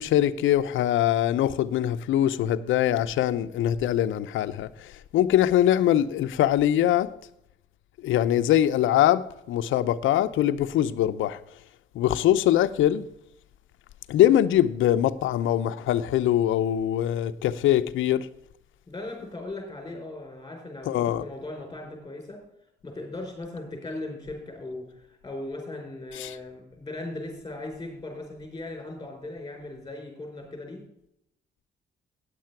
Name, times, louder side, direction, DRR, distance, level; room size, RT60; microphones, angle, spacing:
voice 1, 0.0-7.1 8.0-9.2 9.5-11.4 11.9-13.1 14.1-18.3 20.9-21.3 26.2-26.3, left 12 dB, 80° left, 0.7 m, -23 dB
voice 2, 18.9-22.4 22.8-30.8, left 2 dB, 20° left, 4.9 m, -38 dB
10.0 x 7.6 x 5.9 m
cardioid pair, 90°, 20 cm